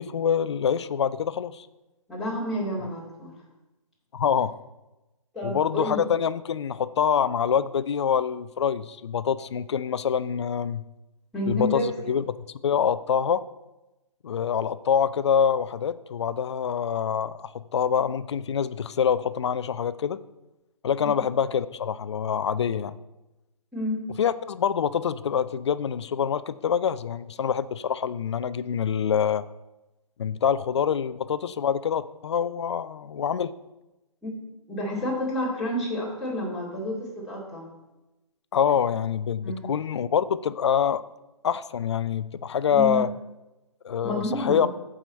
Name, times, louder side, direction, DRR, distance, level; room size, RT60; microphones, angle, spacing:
voice 1, 0.0-1.7 4.1-4.6 5.4-10.8 11.5-13.5 14.2-20.2 20.8-22.9 24.2-29.4 30.2-33.5 38.5-41.0 41.4-43.1 43.8-44.7, left 7 dB, 50° left, 15 dB, 0.5 m, -25 dB
voice 2, 2.1-3.3 5.3-6.0 11.3-11.8 23.7-24.0 34.2-34.3 34.7-37.7 39.4-39.7 42.7-43.0 44.0-44.6, left 1 dB, ahead, -8 dB, 2.6 m, -29 dB
14.5 x 5.0 x 4.2 m, 1.0 s
figure-of-eight pair, 140°, 19 cm